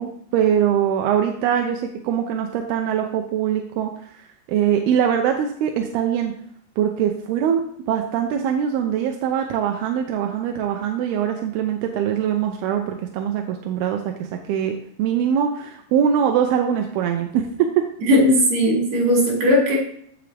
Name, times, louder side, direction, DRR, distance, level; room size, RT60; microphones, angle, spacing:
voice 1, 0.0-6.3 6.8-7.6 7.9-17.8, right 9 dB, 90° right, 4 dB, 2.8 m, -22 dB
voice 2, 18.1-19.8, equal, 60° right, -5 dB, 5.3 m, -17 dB
15.5 x 6.2 x 3.4 m, 0.65 s
omnidirectional pair, 4.3 m